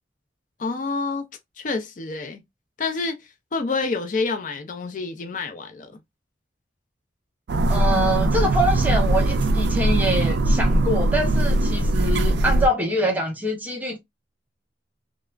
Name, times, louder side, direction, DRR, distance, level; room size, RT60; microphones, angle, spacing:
voice 1, 0.6-1.3 1.6-2.4 2.8-5.9, left 4 dB, 45° left, 0.4 m, -28 dB
sound 1, 7.5-12.7, right 2 dB, 65° right, 0.3 m, -20 dB
voice 2, 7.7-14.0, equal, 10° right, 0.5 m, -24 dB
3.2 x 2.0 x 2.3 m
head